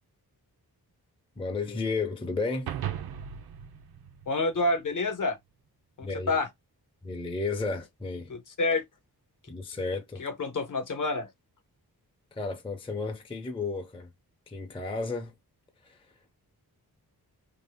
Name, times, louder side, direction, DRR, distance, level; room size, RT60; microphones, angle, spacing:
voice 1, 1.4-2.7 6.0-6.4 7.0-8.3 9.5-10.2 12.3-14.1 14.5-15.3 15.8-16.1, left 3 dB, 15° left, 0.5 m, -33 dB
sound 1, 2.7-5.1, right 10 dB, 70° right, 0.5 m, -38 dB
voice 2, 4.3-5.4 6.0-6.5 8.3-8.8 10.2-11.3, left 2 dB, 55° left, 0.8 m, -28 dB
2.7 x 2.3 x 3.4 m
wide cardioid pair, 135°, 38 cm